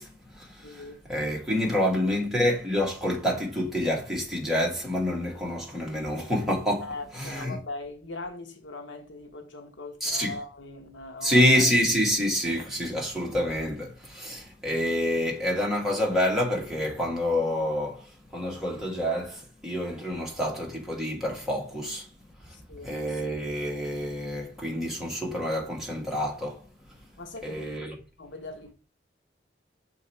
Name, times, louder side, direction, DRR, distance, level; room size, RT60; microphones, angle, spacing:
voice 1, 0.0-0.8 1.1-7.6 10.0-10.4 11.2-22.1 22.4-22.5 22.8-26.6 27.4-27.9, left 1 dB, ahead, 1.7 m, -27 dB
voice 2, 0.6-1.3 1.8-1.9 6.8-11.5 22.5-23.0 27.2-27.6 28.2-28.7, left 2 dB, 85° left, 1.1 m, -40 dB
6.3 x 4.5 x 4.4 m
head